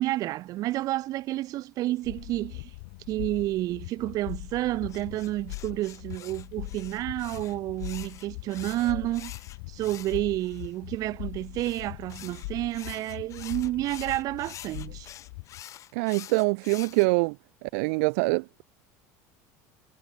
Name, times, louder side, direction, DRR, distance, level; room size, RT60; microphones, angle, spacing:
voice 1, 0.0-2.7 3.1-9.3 9.7-15.1, right 16 dB, 55° right, 1.3 m, -30 dB
sound 1, 2.0-15.6, left 31 dB, 75° left, 1.7 m, -41 dB
sound 2, 4.9-10.7 11.5-17.1, left 12 dB, 45° left, 1.6 m, -46 dB
voice 2, 15.9-17.4 17.6-18.6, right 32 dB, 75° right, 0.7 m, -25 dB
supercardioid pair, 120°, 8 cm